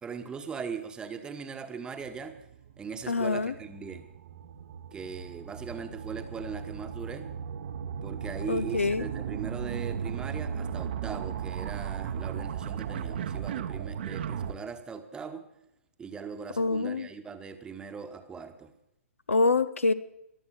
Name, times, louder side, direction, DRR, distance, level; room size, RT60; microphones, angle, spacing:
voice 1, 0.0-2.4 2.8-4.1 4.9-7.3 8.0-15.4 16.0-18.7, right 6 dB, 10° right, 7 dB, 1.2 m, -40 dB
sound 1, 2.0-14.5, right 8 dB, 45° right, 1.0 m, -36 dB
voice 2, 3.1-3.5 8.5-9.1 16.6-17.1 19.3-19.9, left 3 dB, 70° left, 15 dB, 0.8 m, -25 dB
21.5 x 7.9 x 7.6 m, 0.83 s
figure-of-eight pair, 120°, 7 cm